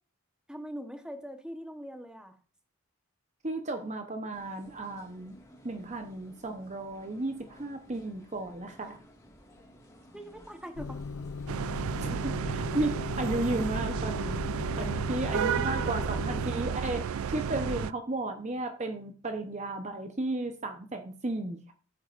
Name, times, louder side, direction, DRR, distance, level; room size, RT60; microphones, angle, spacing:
voice 1, 0.5-2.4 10.1-11.0 14.8-15.7, equal, 5° right, 1.0 m, -43 dB
voice 2, 3.4-5.4 5.6-9.0 12.0-21.7, right 2 dB, 30° right, 0.8 m, -34 dB
sound 1, 4.3-12.2, equal, 15° left, 1.8 m, -56 dB
Motor vehicle (road) / Engine starting / Idling, 10.8-16.5, left 5 dB, 75° left, 0.6 m, -38 dB
sound 2, 11.5-17.9, right 7 dB, 75° right, 0.4 m, -32 dB
14.0 x 8.2 x 2.5 m
head